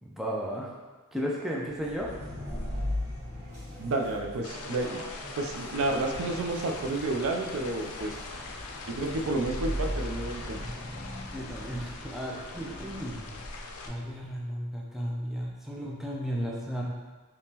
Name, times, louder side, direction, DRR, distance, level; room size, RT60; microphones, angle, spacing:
voice 1, 0.0-0.7 1.1-2.1 11.3-13.4 13.8-16.9, equal, ahead, -4 dB, 0.4 m, -34 dB
sound 1, 1.7-14.2, equal, 40° left, 1.2 m, -39 dB
sound 2, 1.8-9.4, right 1 dB, 45° right, 1.1 m, -50 dB
voice 2, 3.8-5.0 5.4-8.3 8.9-10.6, right 2 dB, 65° right, 2 dB, 0.4 m, -30 dB
sound 3, 4.4-13.9, left 3 dB, 85° left, 0.4 m, -42 dB
3.5 x 2.9 x 2.8 m, 1.3 s
head